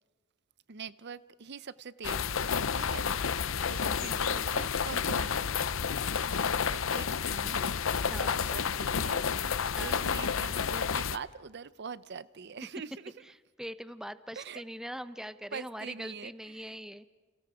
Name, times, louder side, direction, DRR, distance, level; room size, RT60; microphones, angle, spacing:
voice 1, 0.7-2.4 2.7-5.6 6.2-7.7 8.1-9.3 9.8-13.1 14.3-14.6 15.5-16.8, right 5 dB, 55° right, 0.7 m, -44 dB
sound 1, 2.0-11.2, left 6 dB, 75° left, 0.7 m, -30 dB
voice 2, 8.1-8.4 9.7-10.1 13.6-17.0, equal, 5° right, 0.8 m, -42 dB
30.0 x 29.5 x 5.0 m
head